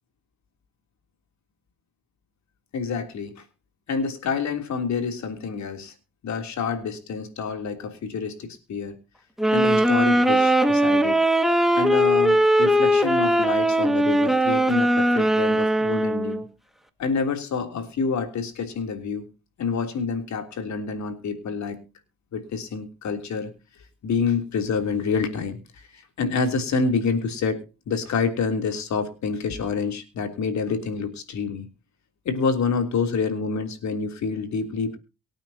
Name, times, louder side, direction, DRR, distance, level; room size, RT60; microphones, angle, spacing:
voice 1, 2.7-3.4 3.9-5.9 6.2-8.9 9.5-11.2 11.7-16.4 17.0-19.3 19.6-21.8 22.3-23.5 24.0-31.7 32.2-35.0, left 5 dB, 65° left, 6 dB, 3.3 m, -27 dB
sound 1, 9.4-16.5, right 1 dB, ahead, 2.0 m, -20 dB
24.0 x 9.0 x 2.9 m, 0.30 s
cardioid pair, 90°, 30 cm